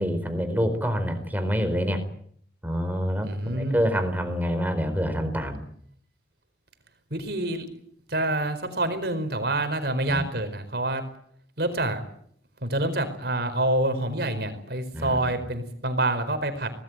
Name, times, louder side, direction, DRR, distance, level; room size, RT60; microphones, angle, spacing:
voice 1, 0.0-2.0 2.6-5.6 10.1-10.2 14.9-15.2, equal, 10° right, 8 dB, 4.3 m, -26 dB
voice 2, 3.2-3.8 7.1-7.7 8.1-11.0 11.6-12.0 12.6-16.8, right 1 dB, 55° right, 9 dB, 4.7 m, -27 dB
25.5 x 19.5 x 9.1 m, 0.65 s
head